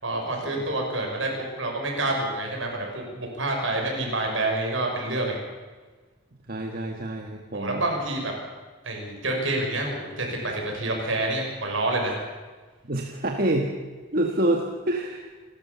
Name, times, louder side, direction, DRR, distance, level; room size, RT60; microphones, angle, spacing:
voice 1, 0.0-5.4 7.5-8.3 8.8-12.2, right 2 dB, 70° right, 0 dB, 6.4 m, -28 dB
voice 2, 6.5-7.8 12.8-13.7 14.1-15.3, right 1 dB, 45° right, 2 dB, 1.7 m, -27 dB
29.0 x 12.5 x 7.2 m, 1.3 s
head